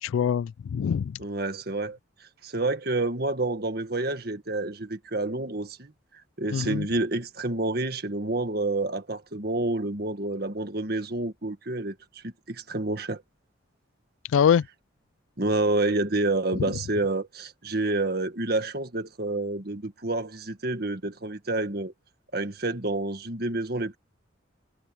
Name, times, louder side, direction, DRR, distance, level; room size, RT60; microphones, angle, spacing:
voice 1, 0.0-1.2 6.5-6.9 14.3-14.7 16.6-16.7, left 8 dB, 85° left, 0.3 m, -24 dB
voice 2, 1.2-5.9 6.4-13.2 15.4-21.9 22.3-24.0, right 2 dB, 55° right, 1.8 m, -29 dB
head